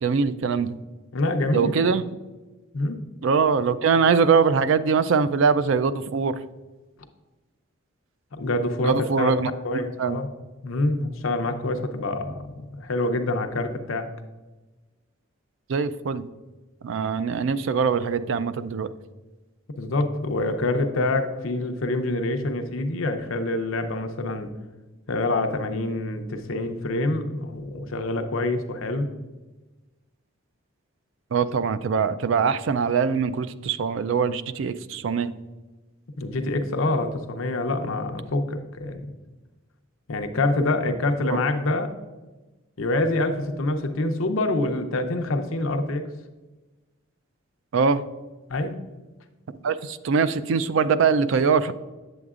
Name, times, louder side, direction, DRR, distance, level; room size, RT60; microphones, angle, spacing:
voice 1, 0.0-0.8 1.5-2.0 3.2-6.4 8.8-9.5 10.0-10.2 15.7-16.2 16.8-18.9 31.3-35.3 41.3-41.4 47.7-48.0 49.6-51.7, right 5 dB, 65° right, 13 dB, 0.3 m, -22 dB
voice 2, 1.1-1.7 2.7-3.0 8.3-9.3 9.6-10.3 10.6-14.1 19.8-24.5 25.1-29.1 36.2-39.0 40.1-41.9 42.8-46.0 48.5-48.7, left 2 dB, 70° left, 6 dB, 0.6 m, -26 dB
7.9 x 7.9 x 2.4 m, 1.2 s
head